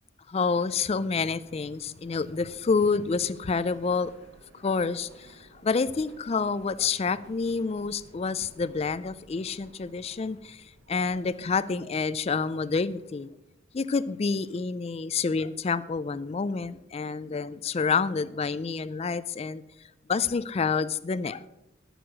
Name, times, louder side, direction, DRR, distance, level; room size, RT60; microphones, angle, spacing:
voice 1, 0.3-4.1 4.5-13.3 13.7-19.6 20.1-21.5, left 4 dB, 30° left, 17 dB, 0.3 m, -28 dB
Subway metro underground, 1.1-13.1, right 1 dB, 65° right, 1.1 m, -56 dB
13.0 x 6.4 x 6.1 m, 0.91 s
head